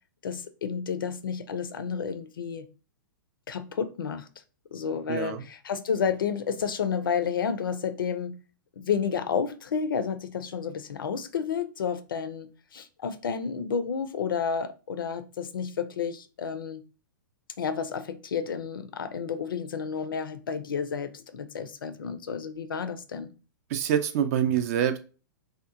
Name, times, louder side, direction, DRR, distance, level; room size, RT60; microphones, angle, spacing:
voice 1, 0.2-2.7 3.5-4.3 4.7-8.3 8.8-16.8 17.6-23.3, left 6 dB, 75° left, 0.4 m, -31 dB
voice 2, 5.1-5.5 23.7-25.0, right 9 dB, 45° right, 0.4 m, -26 dB
2.8 x 2.1 x 2.4 m
figure-of-eight pair, 110°, 11 cm